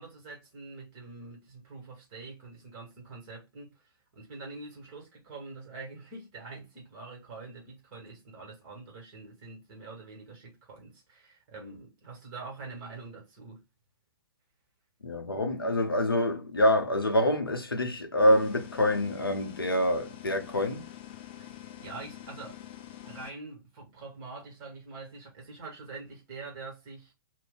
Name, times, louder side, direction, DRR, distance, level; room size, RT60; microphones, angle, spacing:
voice 1, 0.0-13.6 21.4-22.6 23.0-27.1, right 3 dB, 30° right, 1.2 m, -45 dB
voice 2, 15.0-20.9, left 1 dB, 80° left, 0.7 m, -26 dB
sound 1, 18.2-23.3, left 12 dB, 30° left, 0.4 m, -46 dB
2.5 x 2.1 x 3.6 m
figure-of-eight pair, 120°, 12 cm